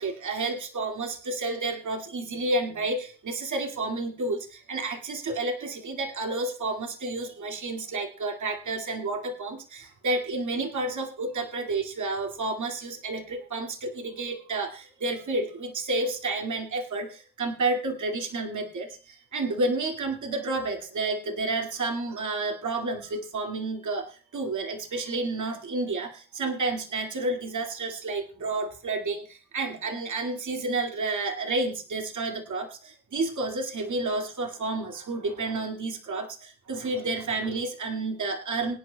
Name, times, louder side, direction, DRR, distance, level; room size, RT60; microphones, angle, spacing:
voice 1, 0.0-24.1 24.3-38.7, right 2 dB, 50° right, 2 dB, 2.2 m, -30 dB
24.0 x 9.8 x 2.3 m, 0.36 s
cardioid pair, 120°, 38 cm